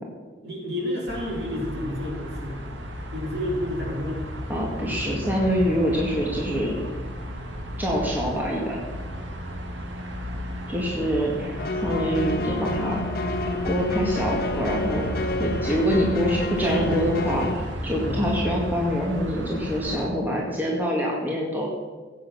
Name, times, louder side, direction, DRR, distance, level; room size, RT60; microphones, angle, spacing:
voice 1, 0.4-2.6 3.1-4.3 16.6-17.0 18.0-18.2, left 1 dB, 60° right, -2 dB, 4.1 m, -30 dB
sound 1, 1.1-20.1, equal, 80° right, 1.7 m, -34 dB
voice 2, 4.5-6.8 7.8-8.8 10.7-13.0 13.6-15.1 15.3-21.7, equal, 10° right, -3 dB, 1.8 m, -25 dB
sound 2, 11.6-17.5, left 2 dB, 50° left, 1.0 m, -29 dB
16.5 x 8.5 x 5.9 m, 1.4 s
head